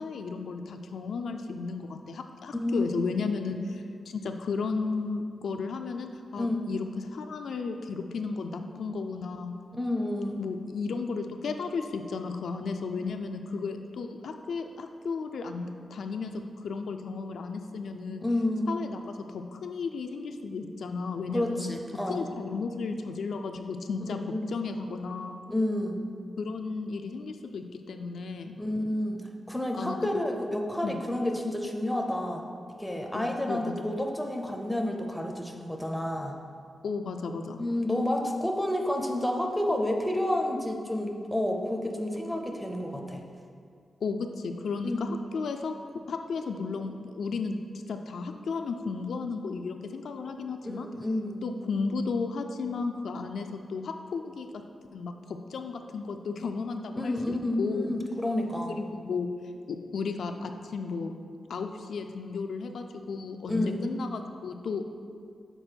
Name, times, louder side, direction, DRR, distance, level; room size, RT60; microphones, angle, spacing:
voice 1, 0.0-9.5 10.4-18.2 18.7-21.7 22.1-25.4 26.4-28.6 29.8-30.2 30.8-31.0 33.1-33.9 36.8-37.6 44.0-45.7 46.1-47.6 47.9-50.9 51.4-54.5 54.9-57.9 58.7-59.3 59.7-61.1 61.5-64.8, left 4 dB, 75° left, 5 dB, 0.3 m, -34 dB
voice 2, 2.5-3.1 6.4-6.7 9.7-10.5 18.2-18.7 21.3-22.3 24.3-24.6 25.5-26.0 28.6-32.4 32.8-36.4 37.6-43.2 44.8-45.0 50.6-51.4 57.0-58.7 63.5-63.8, left 1 dB, 5° left, 2 dB, 0.5 m, -30 dB
6.7 x 4.1 x 4.4 m, 2.3 s
wide cardioid pair, 170°, 0 cm